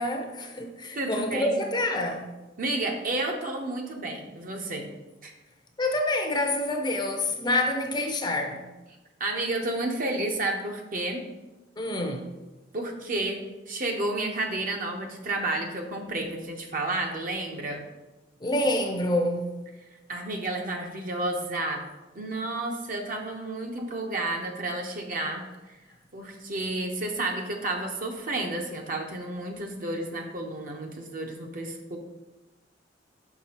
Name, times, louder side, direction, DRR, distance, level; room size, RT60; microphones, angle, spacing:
voice 1, 0.0-2.3 5.8-8.7 11.8-12.3 18.4-19.5, left 1 dB, 25° left, 4 dB, 0.6 m, -27 dB
voice 2, 0.9-1.6 2.6-4.9 5.2-5.3 9.2-11.3 12.7-13.4 13.7-17.9 20.1-21.8 22.1-25.4 26.1-32.0, right 2 dB, 50° right, 2 dB, 0.8 m, -31 dB
5.9 x 5.8 x 2.9 m, 1.1 s
head